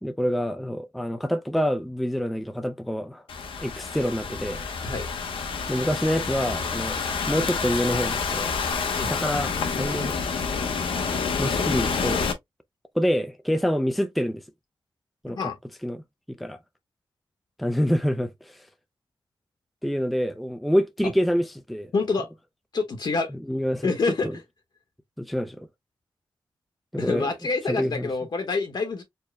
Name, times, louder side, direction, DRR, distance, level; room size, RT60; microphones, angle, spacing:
voice 1, 0.0-3.2 3.6-4.7 5.7-7.0 7.3-8.5 9.0-10.2 11.4-12.3 12.9-14.4 15.2-15.5 15.8-16.0 16.3-16.6 17.6-18.7 19.8-21.9 23.5-23.9 24.2-24.4 25.2-25.7 26.9-27.3 27.7-28.1, equal, ahead, 0.4 m, -26 dB
Thunderstorm / Rain, 3.3-12.3, left 5 dB, 90° left, 0.8 m, -28 dB
voice 2, 15.3-15.6 21.9-22.3 22.7-23.3 23.8-24.3 27.0-29.0, left 4 dB, 60° left, 1.1 m, -27 dB
4.5 x 2.1 x 3.2 m
wide cardioid pair, 95°, 9 cm